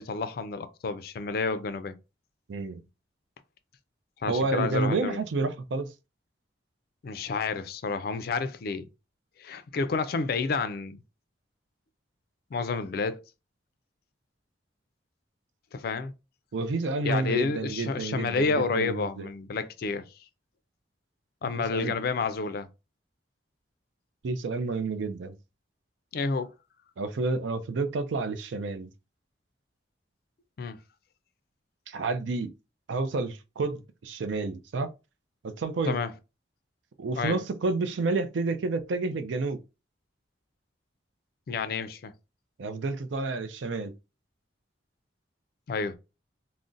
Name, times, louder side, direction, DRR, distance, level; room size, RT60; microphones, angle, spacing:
voice 1, 0.0-1.9 4.2-5.2 7.0-8.9 9.4-11.0 12.5-13.2 15.7-16.1 17.0-20.0 21.4-22.7 26.1-26.5 30.6-30.8 35.9-36.1 37.2-37.4 41.5-42.1 45.7-45.9, left 4 dB, 55° left, 0.3 m, -30 dB
voice 2, 2.5-2.8 4.3-5.9 16.5-19.3 21.5-21.9 24.2-25.4 27.0-28.9 31.9-32.5 32.9-34.9 35.4-36.0 37.0-39.6 42.6-43.9, right 3 dB, 85° right, 0.4 m, -30 dB
2.5 x 2.0 x 3.7 m
head